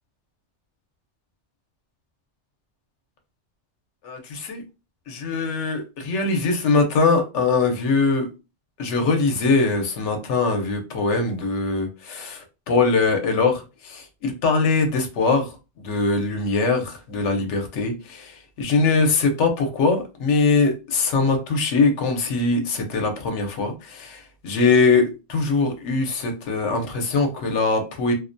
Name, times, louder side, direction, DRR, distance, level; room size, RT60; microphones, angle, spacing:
voice 1, 4.0-4.6 5.1-8.3 8.8-15.5 15.8-28.1, left 3 dB, 85° left, 5 dB, 1.0 m, -22 dB
2.4 x 2.1 x 2.5 m, 0.30 s
omnidirectional pair, 1.2 m